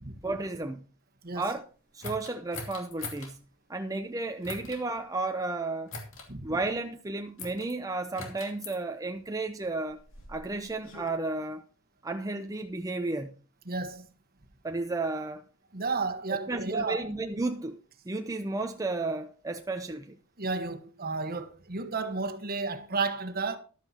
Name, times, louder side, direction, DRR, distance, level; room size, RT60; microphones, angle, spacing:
voice 1, 0.2-0.8 1.3-1.6 1.9-3.4 3.7-5.9 6.4-10.0 10.3-11.6 12.0-13.3 14.6-15.4 16.3-17.8 18.1-20.2, right 2 dB, 15° right, 0.6 m, -33 dB
sound 1, 2.0-3.3 4.4-4.8 5.9-6.3 7.4-7.7 8.2-8.8 9.7-11.1, left 3 dB, 65° left, 2.7 m, -42 dB
voice 2, 13.7-14.1 15.7-17.1 20.4-23.6, right 4 dB, 45° right, 1.3 m, -32 dB
14.0 x 12.0 x 2.9 m
head